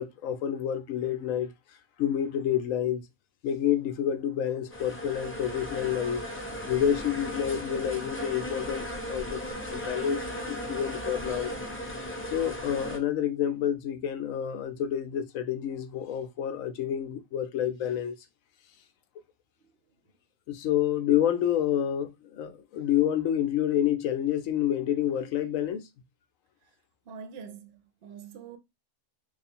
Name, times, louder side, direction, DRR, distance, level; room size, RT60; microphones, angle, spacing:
voice 1, 0.0-1.5 2.0-3.0 3.4-6.3 6.7-9.4 9.7-11.5 12.3-18.1 20.5-25.9, left 10 dB, 70° left, 0.9 m, -28 dB
sound 1, 4.7-13.0, equal, 15° left, 0.5 m, -36 dB
voice 2, 27.1-28.6, right 6 dB, 60° right, 0.8 m, -44 dB
3.1 x 2.4 x 4.3 m
omnidirectional pair, 1.5 m